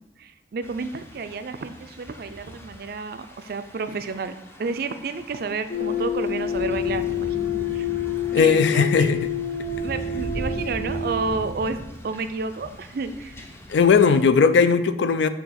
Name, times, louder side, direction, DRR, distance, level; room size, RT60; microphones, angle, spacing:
voice 1, 0.2-7.9 8.3-9.2 9.8-11.8 12.0-13.4, right 4 dB, 55° right, 10 dB, 0.4 m, -31 dB
Thunder / Rain, 0.6-14.2, equal, 15° left, 0.5 m, -39 dB
sound 1, 5.7-11.4, left 7 dB, 55° left, 0.8 m, -28 dB
voice 2, 8.3-9.3 13.7-15.3, left 5 dB, 75° left, 12 dB, 0.4 m, -18 dB
6.9 x 2.8 x 5.7 m, 0.94 s
head